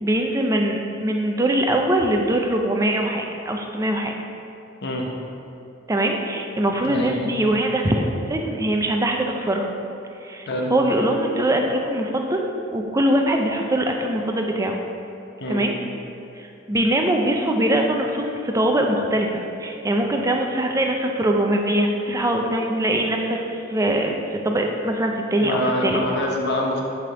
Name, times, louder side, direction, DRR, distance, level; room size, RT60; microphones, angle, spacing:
voice 1, 0.0-4.1 5.9-9.7 10.2-10.4 10.7-14.8 15.5-15.7 16.4-24.1 24.4-26.0, right 1 dB, 15° right, 2 dB, 0.5 m, -22 dB
voice 2, 4.8-5.1 6.9-7.3 10.5-10.7 15.4-15.7 25.4-26.8, left 1 dB, 55° left, 0 dB, 0.8 m, -25 dB
6.3 x 3.4 x 5.7 m, 2.7 s
head